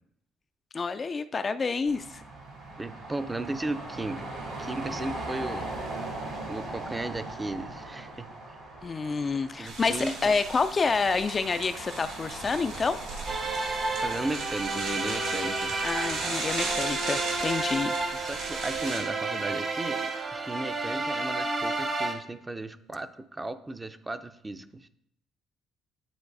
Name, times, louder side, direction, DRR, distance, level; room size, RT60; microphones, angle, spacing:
voice 1, 0.7-2.2 8.8-13.0 15.8-17.9, left 4 dB, 40° left, 10 dB, 0.3 m, -28 dB
sound 1, 1.9-14.2, right 2 dB, 70° right, 2.6 m, -39 dB
voice 2, 2.8-5.7 6.0-6.1 6.5-8.3 9.5-10.3 14.0-15.8 18.1-24.9, right 2 dB, 20° right, 10 dB, 0.6 m, -35 dB
sound 2, 9.6-19.0, right 3 dB, 85° right, 1.9 m, -36 dB
sound 3, 13.3-22.1, right 3 dB, 45° right, 1.4 m, -31 dB
10.5 x 3.9 x 2.6 m, 0.73 s
hypercardioid pair, 50°, 0 cm